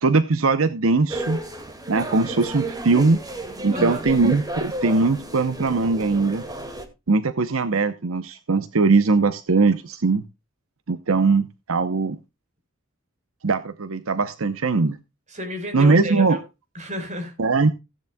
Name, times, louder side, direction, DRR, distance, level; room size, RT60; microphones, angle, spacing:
voice 1, 0.0-1.4 1.9-3.2 3.6-6.4 7.1-10.2 10.9-12.2 13.4-15.0 15.7-16.4 17.4-17.7, right 3 dB, 80° right, 0.8 m, -20 dB
sound 1, 1.1-6.9, right 1 dB, 20° right, 2.1 m, -32 dB
voice 2, 3.7-4.1 15.3-16.4 16.7-17.3, equal, 35° right, 4.3 m, -31 dB
16.5 x 10.5 x 2.3 m
head